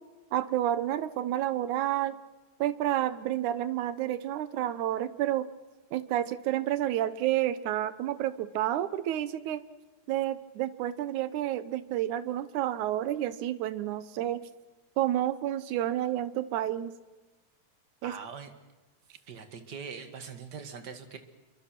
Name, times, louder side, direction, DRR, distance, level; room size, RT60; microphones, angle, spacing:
voice 1, 0.3-2.2 2.6-5.5 5.9-9.6 10.1-14.4 15.0-16.9 18.0-18.1, right 12 dB, 80° right, 15 dB, 2.4 m, -30 dB
voice 2, 18.0-18.5 19.3-21.2, right 6 dB, 40° right, 9 dB, 1.9 m, -42 dB
27.5 x 23.0 x 6.0 m, 1.2 s
omnidirectional pair, 3.5 m